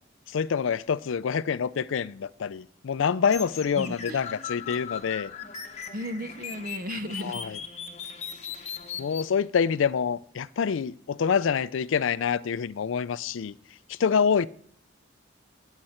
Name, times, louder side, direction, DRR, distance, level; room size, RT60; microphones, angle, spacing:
voice 1, 0.3-5.3 7.2-7.6 9.0-13.5 13.9-14.5, left 6 dB, 80° left, 0.4 m, -26 dB
sound 1, 3.3-9.3, left 7 dB, 35° left, 0.9 m, -38 dB
voice 2, 3.8-4.2 5.9-7.4, equal, 45° right, 0.7 m, -35 dB
14.0 x 9.8 x 4.3 m
head